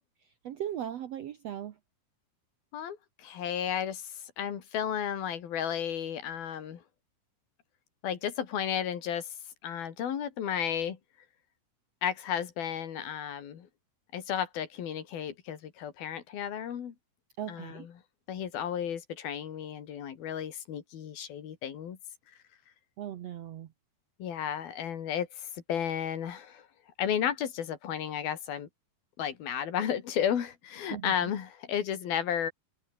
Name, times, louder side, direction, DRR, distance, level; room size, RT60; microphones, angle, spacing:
voice 1, 0.4-1.7 17.4-17.9 23.0-23.7 30.9-31.3, right 10 dB, 70° right, 1.6 m, -38 dB
voice 2, 2.7-6.8 8.0-9.3 9.6-11.0 12.0-13.7 14.1-16.9 17.5-17.9 18.3-22.0 24.2-26.7 27.0-28.7 29.2-32.5, left 9 dB, 75° left, 4.3 m, -33 dB
open air
omnidirectional pair, 4.3 m